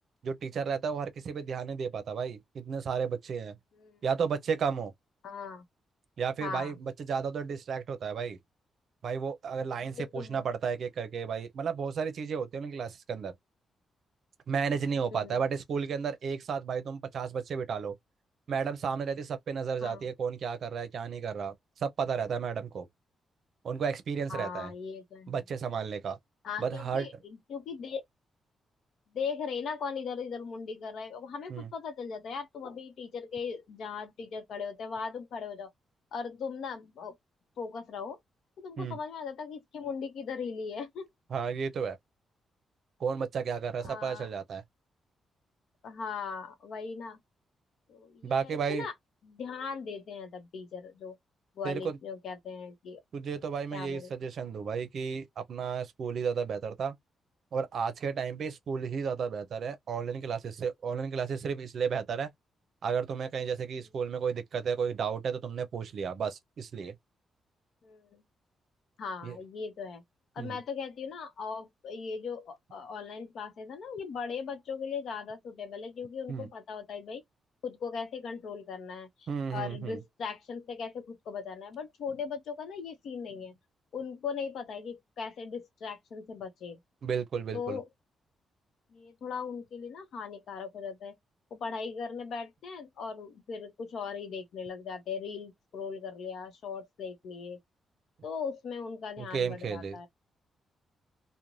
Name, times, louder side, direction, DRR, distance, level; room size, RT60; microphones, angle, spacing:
voice 1, 0.2-3.6 4.0-4.9 6.2-8.4 9.0-13.3 14.5-17.9 18.5-22.9 23.6-24.7 25.3-26.2 26.6-27.1 31.5-31.7 38.8-39.0 41.3-42.0 43.0-44.6 48.2-48.9 51.6-52.0 53.1-57.0 57.5-62.3 62.8-66.9 69.2-69.4 70.4-70.6 76.3-76.5 79.3-80.0 87.0-87.8 99.2-100.1, right 6 dB, 60° right, 0.6 m, -33 dB
voice 2, 5.2-5.6 6.4-6.7 9.8-10.5 15.0-15.4 19.8-20.1 24.3-25.3 26.4-28.0 29.1-35.7 36.1-37.2 37.6-38.2 38.6-41.1 43.8-44.3 45.8-47.2 47.9-48.9 49.2-51.1 51.6-53.0 53.7-54.1 67.8-68.2 69.0-70.0 70.3-77.2 77.6-83.5 83.9-86.8 87.5-87.9 88.9-91.1 91.5-97.6 98.2-100.1, left 5 dB, 70° left, 0.8 m, -39 dB
2.5 x 2.1 x 3.0 m
cardioid pair, 115°, 0 cm